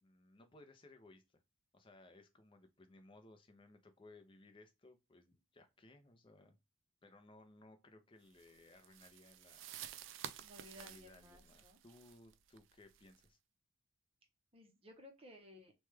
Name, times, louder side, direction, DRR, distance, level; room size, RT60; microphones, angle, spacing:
voice 1, 0.0-1.4 1.7-6.5 7.0-9.7 10.7-13.4, left 2 dB, 25° left, 0.5 m, -62 dB
sound 1, 8.4-13.3, right 10 dB, 60° right, 0.3 m, -52 dB
voice 2, 10.4-11.8 14.5-15.7, left 1 dB, 25° right, 0.6 m, -58 dB
3.1 x 2.2 x 3.1 m
head